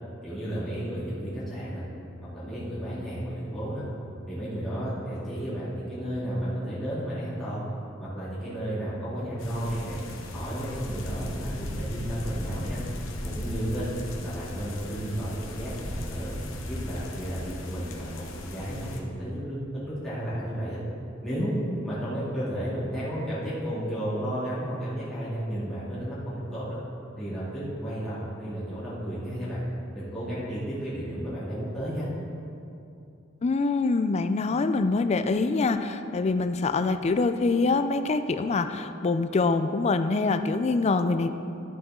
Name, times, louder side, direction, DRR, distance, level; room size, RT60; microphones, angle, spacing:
voice 1, 0.2-1.8 2.3-3.8 4.3-7.6 8.0-10.0 10.3-12.8 13.2-13.8 14.2-16.3 16.7-20.8 21.2-21.6 21.8-26.8 27.2-29.6 29.9-32.1, equal, ahead, -12 dB, 2.6 m, -33 dB
sound 1, 9.4-19.0, left 1 dB, 90° left, 1.1 m, -37 dB
voice 2, 33.4-41.3, left 3 dB, 35° left, 10 dB, 0.4 m, -25 dB
12.0 x 8.0 x 3.7 m, 2.6 s
head